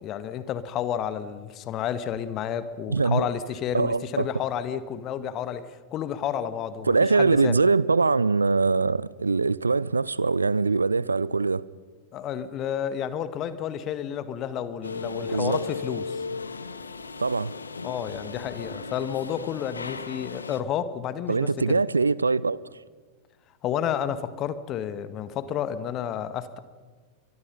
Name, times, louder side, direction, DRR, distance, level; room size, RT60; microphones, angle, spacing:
voice 1, 0.0-7.5 12.1-16.2 17.8-21.8 23.6-26.6, left 9 dB, 35° left, 1.6 m, -31 dB
voice 2, 2.9-3.3 3.7-4.3 6.9-11.6 15.3-15.6 17.2-17.5 21.3-22.6, right 4 dB, 80° right, 0.6 m, -22 dB
sound 1, 14.8-20.6, left 4 dB, 75° left, 1.2 m, -36 dB
28.5 x 23.5 x 5.5 m
figure-of-eight pair, 90°, 0 cm